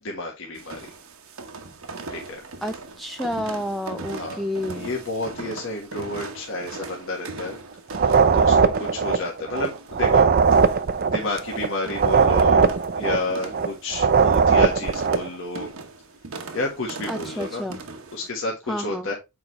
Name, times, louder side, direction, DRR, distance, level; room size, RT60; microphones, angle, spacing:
voice 1, 0.0-0.9 2.1-2.4 4.1-4.4 4.7-7.6 7.9-8.1 8.3-10.3 11.1-15.7 16.5-17.6 18.1-19.1, left 2 dB, 65° left, 1.5 m, -31 dB
sound 1, 0.6-18.3, right 3 dB, 75° right, 1.1 m, -39 dB
voice 2, 2.6-4.9 17.1-17.8 18.7-19.1, left 1 dB, ahead, 0.4 m, -30 dB
sound 2, 7.9-15.3, right 5 dB, 45° right, 0.6 m, -19 dB
7.2 x 4.9 x 3.1 m
head